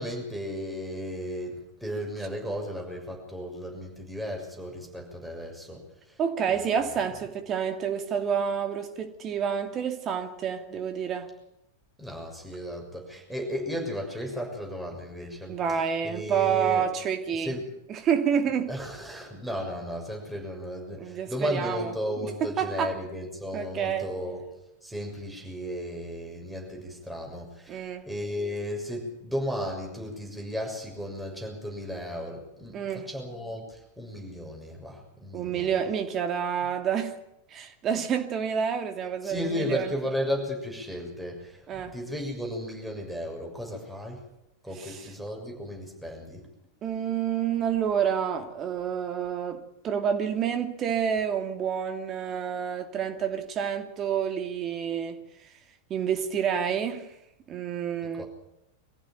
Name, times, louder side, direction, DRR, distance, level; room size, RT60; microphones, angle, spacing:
voice 1, 0.0-6.2 6.5-6.8 12.0-16.9 17.4-17.6 18.7-35.8 39.2-44.2 44.6-46.4 58.2-58.3, equal, 5° right, 6.8 m, -35 dB
voice 2, 6.2-11.3 15.5-17.5 17.9-18.7 21.0-21.9 22.2-22.9 23.5-24.1 27.7-28.1 32.7-33.1 35.3-37.1 37.5-39.9 41.7-42.0 44.8-45.1 46.8-55.2 55.9-57.1 57.5-58.2, right 8 dB, 30° right, 2.6 m, -28 dB
24.5 x 15.0 x 9.3 m
figure-of-eight pair, 90°, 0 cm